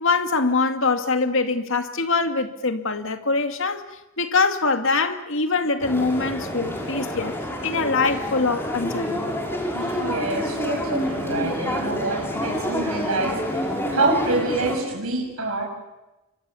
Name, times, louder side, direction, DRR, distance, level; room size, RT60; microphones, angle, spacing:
voice 1, 0.0-7.4 7.6-9.4, left 4 dB, 65° left, 7 dB, 2.3 m, -23 dB
sound 1, 5.8-14.8, equal, 10° left, 5.8 m, -28 dB
voice 2, 9.7-15.6, right 3 dB, 80° right, 0 dB, 6.7 m, -26 dB
28.0 x 24.5 x 7.1 m, 0.99 s
head